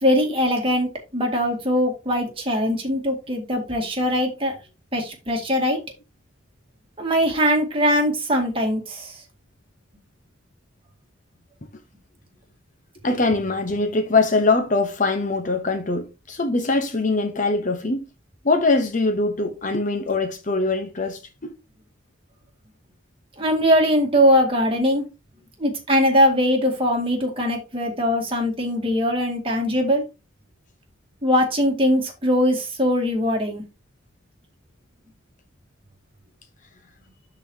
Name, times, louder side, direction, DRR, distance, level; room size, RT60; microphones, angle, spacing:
voice 1, 0.0-4.5 4.9-5.8 7.0-9.1 23.4-25.1 25.6-30.0 31.2-33.6, equal, 25° right, 2.1 m, -21 dB
voice 2, 13.0-18.0 18.4-21.5, left 3 dB, 40° left, 0.9 m, -22 dB
12.0 x 4.1 x 2.8 m
head